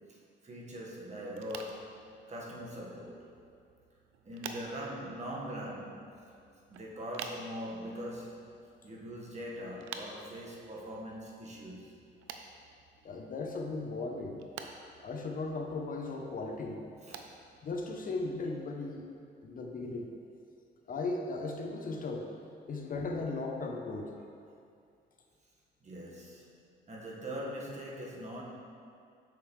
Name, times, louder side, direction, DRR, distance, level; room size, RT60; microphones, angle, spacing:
voice 1, 0.1-3.3 4.2-6.1 6.7-8.4 8.8-12.0 17.0-17.3 25.8-26.5 26.9-28.4, equal, 35° right, -3 dB, 1.4 m, -42 dB
sound 1, 1.3-18.6, right 6 dB, 90° right, 0.5 m, -51 dB
voice 2, 13.0-14.4 15.0-16.8 17.6-19.1 19.4-20.1 20.9-22.3 22.7-24.1, left 3 dB, 45° left, 2 dB, 0.7 m, -37 dB
6.6 x 6.5 x 3.2 m, 2.4 s
cardioid pair, 90°, 20 cm